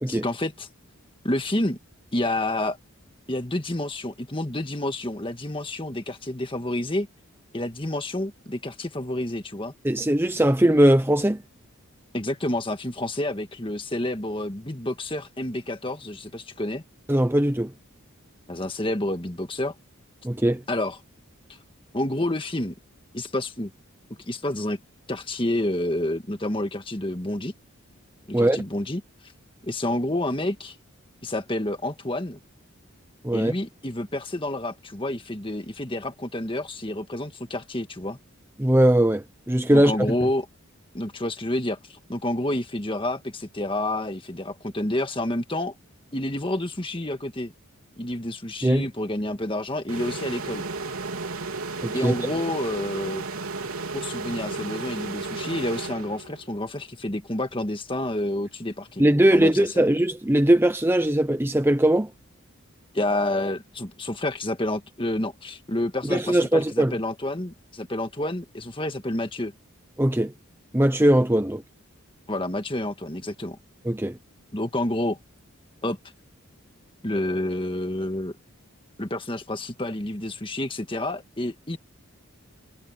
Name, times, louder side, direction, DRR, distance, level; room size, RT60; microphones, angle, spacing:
voice 1, 0.1-0.7 1.2-1.8 2.1-2.8 3.3-7.1 7.5-9.7 12.1-16.8 18.5-19.7 20.7-21.0 21.9-22.7 23.1-23.7 24.3-24.8 25.1-27.5 28.3-29.0 29.6-30.8 31.2-32.4 33.3-38.2 39.7-40.5 40.9-45.8 46.1-47.5 48.0-50.6 51.9-53.2 53.9-59.1 59.3-59.9 62.9-69.5 72.3-73.6 74.5-75.2 75.8-76.0 77.0-78.3 79.0-81.8, left 1 dB, 25° left, 1.7 m, -29 dB
voice 2, 9.8-11.4 17.1-17.7 20.2-20.6 28.3-28.6 33.2-33.5 38.6-39.9 48.6-48.8 51.8-52.1 59.0-62.1 66.1-67.0 70.0-70.3 70.7-71.6 73.8-74.2, right 1 dB, 10° right, 0.7 m, -20 dB
sound 1, 49.9-56.6, right 3 dB, 75° right, 3.6 m, -33 dB
head